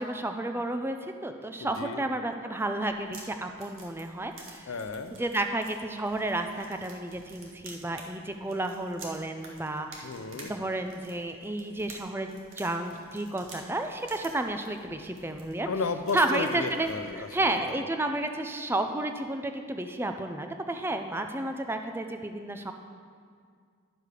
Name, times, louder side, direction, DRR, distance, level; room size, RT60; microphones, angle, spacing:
voice 1, 0.0-4.7 5.2-10.1 10.4-15.7 16.1-16.9 17.2-22.7, right 2 dB, 10° right, 6 dB, 0.4 m, -31 dB
voice 2, 1.6-2.0 4.7-5.2 10.0-10.5 15.7-17.3, left 4 dB, 80° left, 9 dB, 0.5 m, -33 dB
sound 1, 2.8-17.3, right 3 dB, 70° right, 1.3 m, -51 dB
10.5 x 6.6 x 4.9 m, 2.1 s
head